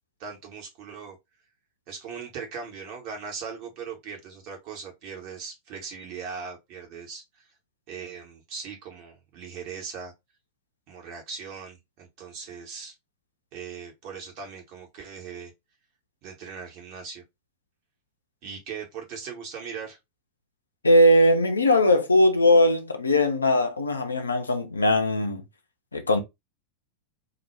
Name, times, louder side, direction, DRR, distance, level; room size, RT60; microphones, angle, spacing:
voice 1, 0.2-1.2 1.9-7.5 7.9-10.1 10.9-12.9 13.5-15.5 16.2-17.2 18.4-20.0, right 6 dB, 45° right, 0.9 m, -39 dB
voice 2, 20.8-25.4 25.9-26.2, left 1 dB, 80° left, 0.4 m, -20 dB
2.1 x 2.0 x 3.0 m
figure-of-eight pair, 90°, 0 cm